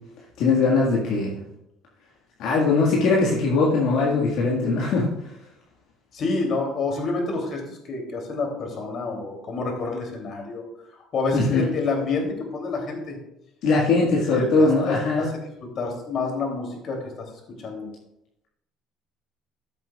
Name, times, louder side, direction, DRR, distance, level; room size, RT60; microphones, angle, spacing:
voice 1, 0.4-1.4 2.4-5.1 11.3-11.6 13.6-15.3, left 3 dB, 70° left, -4 dB, 1.7 m, -20 dB
voice 2, 6.1-10.6 10.9-13.2 14.3-15.3 15.6-17.3 17.6-17.9, left 3 dB, 50° left, 1 dB, 2.9 m, -28 dB
13.5 x 7.3 x 2.4 m, 0.84 s
cardioid pair, 105°, 0 cm